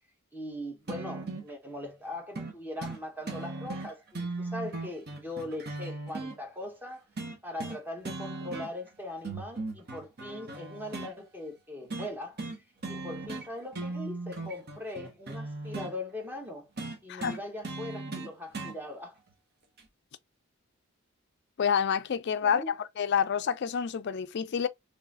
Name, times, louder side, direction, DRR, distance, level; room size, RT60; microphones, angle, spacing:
voice 1, 0.3-7.0 7.4-12.4 12.9-16.7 17.0-19.2 22.4-22.7, left 1 dB, 10° right, 1.0 m, -40 dB
sound 1, 0.9-1.5 2.4-2.5 2.8-3.0 3.3-6.4 7.2-7.8 8.0-8.9 9.2-11.1 11.9-12.1 12.4-12.6 12.8-13.5 13.7-15.9 16.8-18.8 19.8-19.9, right 3 dB, 50° right, 1.2 m, -37 dB
voice 2, 21.6-24.7, left 7 dB, 55° left, 0.4 m, -28 dB
3.8 x 3.2 x 2.7 m
head